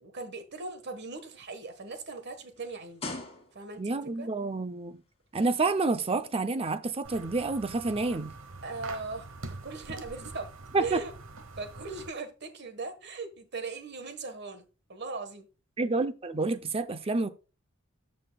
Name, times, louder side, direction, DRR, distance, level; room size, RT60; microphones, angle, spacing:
voice 1, 0.0-3.0 3.5-4.3 8.6-10.5 10.8-11.1 11.6-14.6 14.9-15.5, right 3 dB, 55° right, 1.4 m, -39 dB
sound 1, 0.8-4.0 4.8-5.0, left 3 dB, 30° left, 2.5 m, -43 dB
voice 2, 3.8-5.0 5.3-8.3 10.7-11.0 15.8-17.3, right 3 dB, 30° right, 0.6 m, -29 dB
sound 2, 7.0-12.1, right 3 dB, 70° right, 1.1 m, -44 dB
13.5 x 5.6 x 2.3 m
head